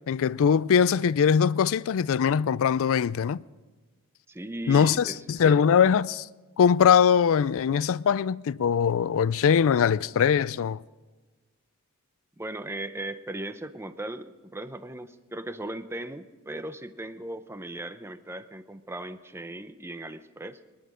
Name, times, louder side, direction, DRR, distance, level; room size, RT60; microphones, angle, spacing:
voice 1, 0.1-3.4 4.7-6.3 6.6-10.8, left 7 dB, 65° left, 0.4 m, -22 dB
voice 2, 4.3-5.8 12.4-20.6, right 1 dB, 10° right, 0.6 m, -38 dB
24.5 x 10.5 x 5.0 m
head